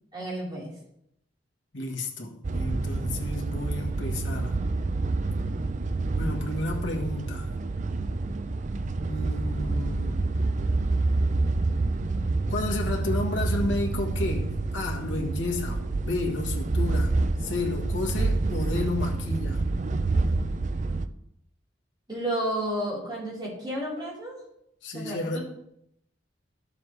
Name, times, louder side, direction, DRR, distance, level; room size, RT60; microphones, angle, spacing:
voice 1, 0.1-0.7 22.1-24.4 24.9-25.4, right 1 dB, 25° right, 4.1 m, -31 dB
voice 2, 1.7-4.5 6.2-7.5 9.1-10.2 12.5-19.7 24.8-25.4, left 2 dB, 90° left, 1.5 m, -32 dB
sound 1, 2.4-21.1, right 3 dB, 40° right, 0.5 m, -28 dB
12.0 x 7.1 x 3.3 m
head